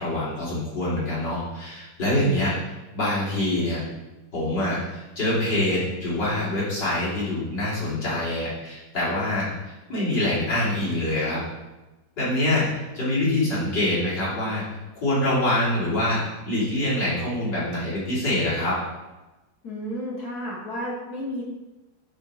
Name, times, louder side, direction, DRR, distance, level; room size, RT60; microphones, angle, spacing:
voice 1, 0.0-3.8 4.3-11.4 12.2-14.6 14.9-16.2 16.5-18.8, left 1 dB, 70° left, -9 dB, 4.1 m, -25 dB
voice 2, 19.6-21.4, equal, 55° left, -4 dB, 2.6 m, -32 dB
11.0 x 5.0 x 4.3 m, 1.1 s
omnidirectional pair, 1.9 m